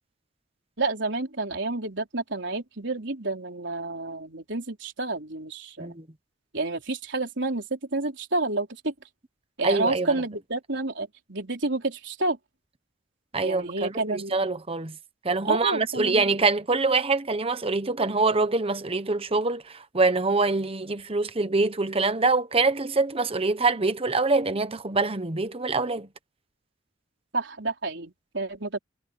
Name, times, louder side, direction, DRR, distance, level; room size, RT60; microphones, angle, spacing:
voice 1, 0.8-6.0 6.5-8.9 9.6-12.4 13.4-14.4 15.4-16.3 27.3-28.8, right 2 dB, 65° right, 4.4 m, -29 dB
voice 2, 9.6-10.1 13.3-15.0 15.2-26.1, right 3 dB, 30° right, 1.1 m, -25 dB
head